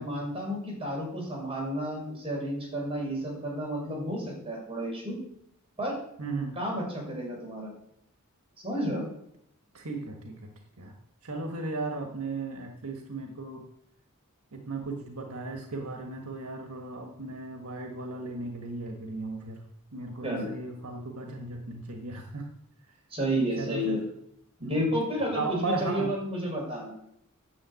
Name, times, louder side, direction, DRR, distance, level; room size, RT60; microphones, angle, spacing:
voice 1, 0.0-5.2 5.8-6.0 6.6-7.7 8.6-9.1 20.2-20.5 23.1-24.0 24.6-26.9, equal, 25° right, -2 dB, 5.5 m, -31 dB
voice 2, 6.2-6.6 9.7-10.5 10.8-10.9 11.2-13.6 14.5-19.6 19.9-22.5 23.6-24.0 24.6-24.9 25.3-26.1, right 3 dB, 80° right, 3 dB, 1.6 m, -36 dB
10.0 x 7.1 x 8.3 m, 0.75 s
head